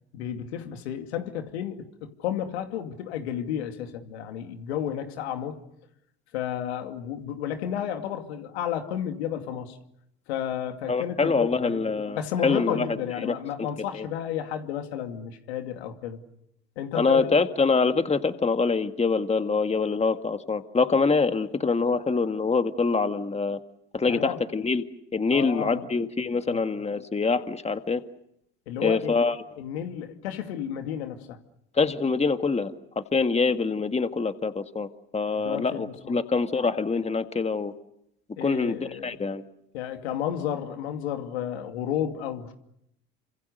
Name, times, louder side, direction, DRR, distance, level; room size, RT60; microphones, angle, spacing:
voice 1, 0.1-5.6 6.3-9.8 10.3-11.8 12.1-16.2 16.8-17.3 24.1-24.4 25.3-25.8 26.5-26.6 28.7-29.1 29.6-31.4 35.4-36.2 38.4-39.2 39.7-42.5, left 10 dB, 85° left, 2.5 m, -32 dB
voice 2, 10.9-13.4 13.9-14.1 16.9-23.6 23.9-24.8 25.1-28.0 28.8-29.4 31.7-37.7 38.4-39.4, left 4 dB, 20° left, 1.8 m, -25 dB
28.5 x 26.0 x 6.7 m
hypercardioid pair, 70°, 31 cm